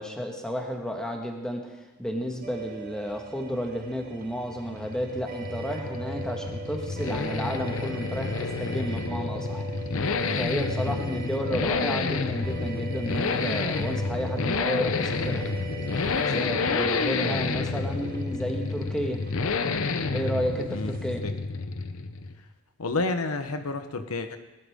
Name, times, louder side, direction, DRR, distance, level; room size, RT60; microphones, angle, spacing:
voice 1, 0.0-1.6 2.0-9.6 10.3-15.4 16.3-19.2 20.1-21.2, equal, 5° left, 1 dB, 1.5 m, -32 dB
sound 1, 2.4-21.2, right 3 dB, 40° right, 1.1 m, -41 dB
sound 2, 4.4-22.4, left 4 dB, 65° left, 0.7 m, -29 dB
voice 2, 22.8-24.4, left 3 dB, 90° left, 8 dB, 1.1 m, -30 dB
19.0 x 12.0 x 3.7 m, 1.1 s
head